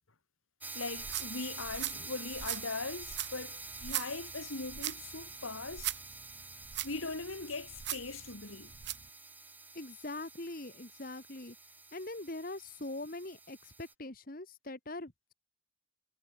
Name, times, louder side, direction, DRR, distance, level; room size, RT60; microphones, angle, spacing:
sound 1, 0.6-13.9, right 3 dB, 10° right, 1.3 m, -47 dB
voice 1, 0.7-5.9 6.8-8.7, left 3 dB, 85° left, 2.4 m, -40 dB
sound 2, 0.9-9.1, right 13 dB, 55° right, 0.8 m, -41 dB
voice 2, 9.7-11.5 11.9-15.3, left 2 dB, 45° left, 1.6 m, -42 dB
head